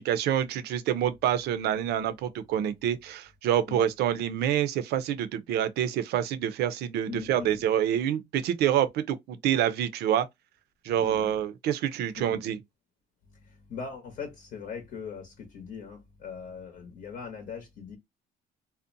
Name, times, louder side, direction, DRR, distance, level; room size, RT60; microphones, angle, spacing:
voice 1, 0.0-10.3 10.8-12.6, right 10 dB, 75° right, 0.5 m, -27 dB
voice 2, 7.1-7.7 11.0-11.4 12.1-12.4 13.5-18.0, left 6 dB, 55° left, 0.8 m, -40 dB
2.5 x 2.1 x 2.5 m
cardioid pair, 110°, 17 cm